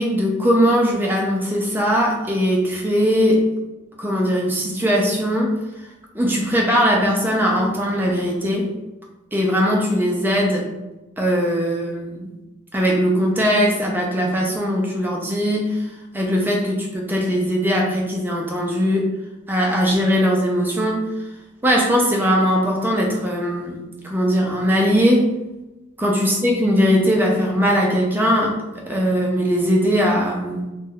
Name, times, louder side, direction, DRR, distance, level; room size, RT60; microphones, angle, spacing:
voice 1, 0.0-3.4 4.0-5.5 6.1-8.7 9.3-10.7 11.2-12.3 12.7-15.8 16.1-19.0 19.5-21.0 21.6-25.3 26.0-28.6 28.9-30.6, equal, 10° right, -1 dB, 0.4 m, -20 dB
2.5 x 2.2 x 3.6 m, 1.0 s
head